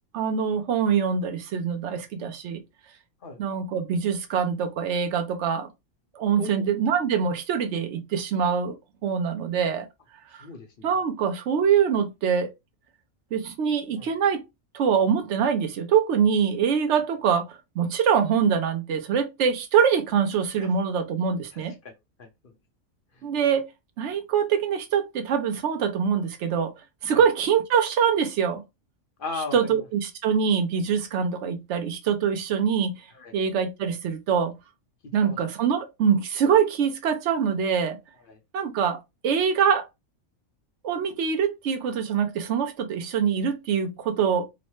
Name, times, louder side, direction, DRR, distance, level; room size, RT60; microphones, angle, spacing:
voice 1, 0.1-2.6 3.4-5.7 6.1-8.8 9.0-9.9 10.3-10.5 10.8-12.5 13.3-14.4 14.7-21.7 23.2-23.7 24.0-26.7 27.0-28.6 29.5-33.1 33.3-34.5 35.1-38.0 38.5-39.9 40.8-44.5, right 7 dB, 65° right, 0.8 m, -24 dB
voice 2, 6.4-6.7 10.3-10.9 14.0-14.1 20.6-20.7 21.5-21.9 22.2-22.5 23.1-23.2 27.1-27.2 29.2-29.9 33.1-33.3 35.2-35.4 38.3-38.4, left 3 dB, 55° left, 0.6 m, -38 dB
3.1 x 2.0 x 3.0 m
omnidirectional pair, 1.4 m